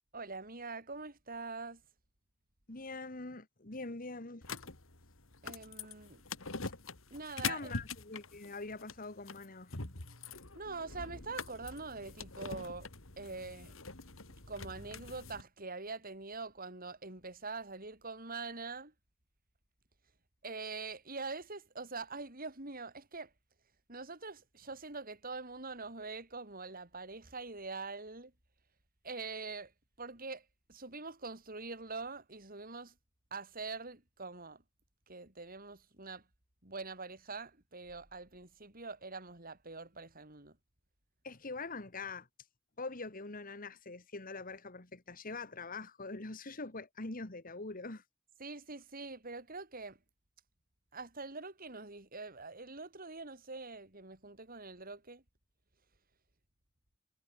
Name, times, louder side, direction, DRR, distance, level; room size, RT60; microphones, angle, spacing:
voice 1, 0.1-1.8 5.4-6.2 7.1-7.7 10.5-12.9 13.2-13.8 14.5-18.9 20.4-23.3 23.9-28.3 29.0-29.7 30.0-32.9 33.3-34.6 35.1-36.2 36.6-40.6 48.4-50.0 50.9-55.2, right 3 dB, 45° right, 5.1 m, -44 dB
voice 2, 2.7-4.4 6.6-6.7 7.4-9.7 41.2-42.3 42.8-48.0, left 3 dB, 45° left, 2.0 m, -43 dB
sound 1, 4.4-15.4, left 4 dB, 80° left, 3.0 m, -44 dB
head